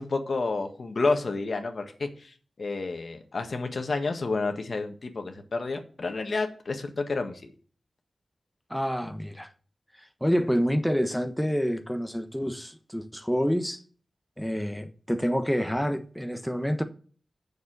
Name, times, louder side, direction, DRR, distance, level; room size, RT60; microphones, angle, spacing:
voice 1, 0.0-7.4, left 3 dB, 65° left, 1.6 m, -30 dB
voice 2, 8.7-9.5 10.0-13.8 14.4-16.8, equal, ahead, 1.2 m, -28 dB
7.3 x 6.8 x 6.6 m
cardioid pair, 40°, 0 cm